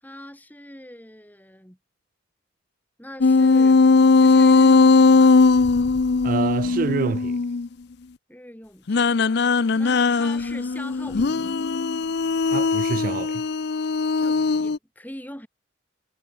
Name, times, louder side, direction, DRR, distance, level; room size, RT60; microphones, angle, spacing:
voice 1, 0.0-1.8 3.0-3.8 4.2-5.4 8.3-9.1 9.7-11.6 14.2-15.5, left 1 dB, 10° left, 5.3 m, -41 dB
sound 1, 3.2-7.7 8.9-14.8, left 4 dB, 55° left, 0.5 m, -18 dB
voice 2, 6.2-7.4 12.5-13.4, right 5 dB, 45° right, 0.4 m, -26 dB
head